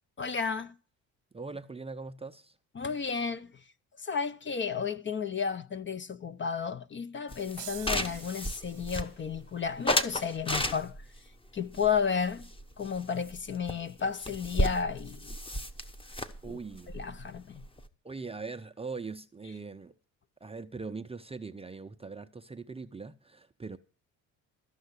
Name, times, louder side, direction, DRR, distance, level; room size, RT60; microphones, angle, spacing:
voice 1, 0.2-0.7 2.7-3.6 4.0-11.0 11.5-12.5 12.8-15.4 16.4-16.5 16.9-17.6, left 6 dB, 30° left, 0.6 m, -32 dB
voice 2, 1.3-2.6 16.4-16.9 18.0-20.0 20.4-23.8, right 4 dB, 15° right, 0.5 m, -41 dB
sound 1, 7.3-9.4 9.9-11.2 11.7-13.0 13.3-13.4 13.7-13.8 14.0-17.9, left 1 dB, 15° left, 0.9 m, -33 dB
sound 2, 7.6-9.2, right 17 dB, 80° right, 0.8 m, -47 dB
13.0 x 5.7 x 8.1 m
supercardioid pair, 85°, 39 cm